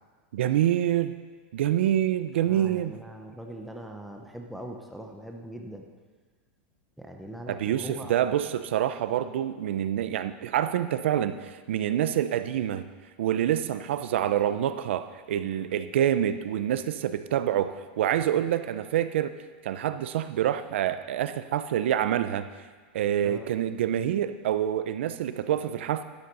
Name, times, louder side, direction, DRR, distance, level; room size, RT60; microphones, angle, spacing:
voice 1, 0.3-1.2 1.5-2.9 7.5-12.9 13.2-19.3 19.6-22.5 22.9-26.0, right 11 dB, 75° right, 11 dB, 0.7 m, -26 dB
voice 2, 2.5-5.9 7.0-8.2 23.2-23.5, right 1 dB, ahead, 1 dB, 0.8 m, -41 dB
12.0 x 9.7 x 5.5 m, 1.4 s
supercardioid pair, 165°, 6 cm